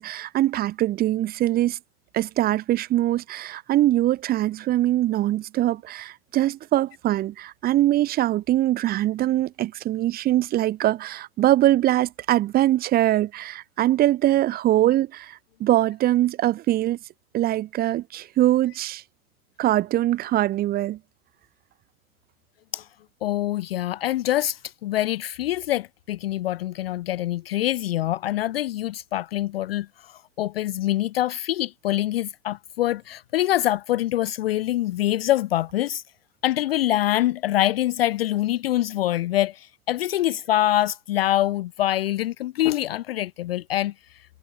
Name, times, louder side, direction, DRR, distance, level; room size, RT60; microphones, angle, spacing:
voice 1, 0.0-1.8 2.1-17.0 17.3-19.0 19.6-21.0, right 14 dB, 20° right, 1.3 m, -22 dB
voice 2, 23.2-36.0 36.4-43.9, left 14 dB, 40° left, 0.6 m, -25 dB
hypercardioid pair, 125°, 45 cm